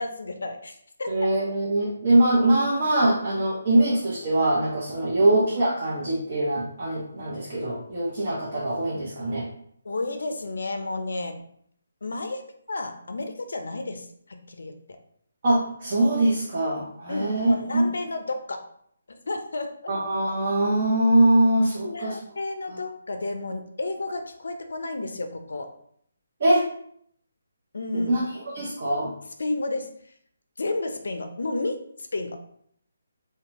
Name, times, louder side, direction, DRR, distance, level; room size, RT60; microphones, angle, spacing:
voice 1, 0.0-1.1 5.0-5.3 9.8-11.4 12.0-12.4 12.7-14.7 17.1-18.6 19.3-19.9 21.8-25.7 27.7-28.1 29.4-29.9 30.6-31.7 32.1-32.4, left 2 dB, 75° left, 6 dB, 0.4 m, -31 dB
voice 2, 1.1-9.5 15.4-17.9 19.9-22.2 26.4-26.7 27.9-28.3 28.5-29.1, right 1 dB, 45° right, -6 dB, 0.7 m, -22 dB
2.6 x 2.2 x 2.9 m, 0.66 s
hypercardioid pair, 160°, 0 cm